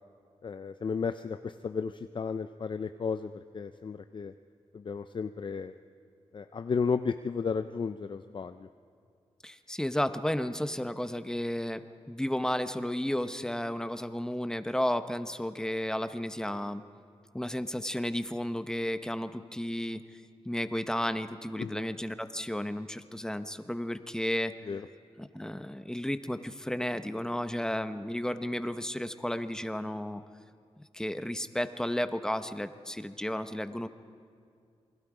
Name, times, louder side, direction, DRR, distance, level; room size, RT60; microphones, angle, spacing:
voice 1, 0.4-4.3 4.7-5.7 6.3-8.7 21.6-21.8 24.7-24.8, left 5 dB, 45° left, 10 dB, 0.5 m, -33 dB
voice 2, 9.4-16.8 17.3-20.0 20.4-24.5 25.2-30.2 30.9-33.9, left 1 dB, 5° left, 11 dB, 0.8 m, -33 dB
28.0 x 21.0 x 4.9 m, 2.3 s
wide cardioid pair, 85°, 11 cm